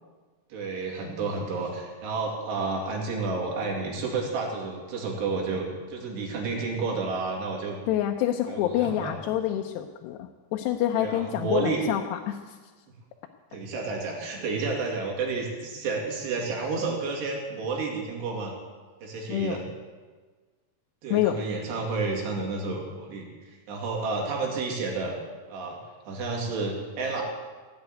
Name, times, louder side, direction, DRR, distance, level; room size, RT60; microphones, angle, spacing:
voice 1, 0.5-7.8 8.5-9.1 10.9-11.8 13.5-18.5 19.0-19.6 21.0-25.2 25.5-25.8 26.1-27.2, right 3 dB, 80° right, 0 dB, 4.6 m, -31 dB
voice 2, 7.9-12.6 19.3-19.6 21.1-21.4, left 12 dB, 85° left, 4 dB, 2.8 m, -27 dB
16.5 x 8.1 x 9.2 m, 1.4 s
omnidirectional pair, 4.7 m